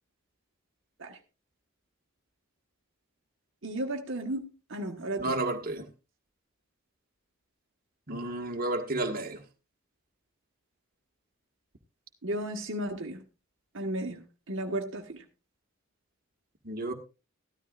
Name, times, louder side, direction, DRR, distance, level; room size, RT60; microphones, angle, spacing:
voice 1, 3.6-5.4 12.2-13.2 13.7-15.2, right 1 dB, 60° right, 1.5 m, -34 dB
voice 2, 5.2-5.9 8.1-9.4 16.6-16.9, right 2 dB, 45° right, 1.7 m, -31 dB
14.5 x 13.0 x 2.5 m
head